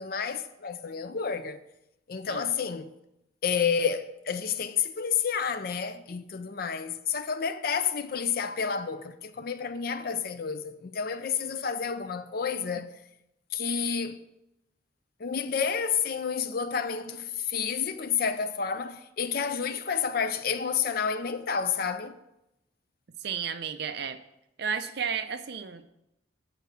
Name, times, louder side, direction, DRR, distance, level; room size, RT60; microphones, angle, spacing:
voice 1, 0.0-1.6 2.1-2.9 3.4-12.9 13.5-14.2 15.2-22.1, left 6 dB, 50° left, 0.5 m, -30 dB
voice 2, 23.2-24.2 24.6-25.8, right 7 dB, 55° right, 0.5 m, -33 dB
8.1 x 4.6 x 6.8 m
head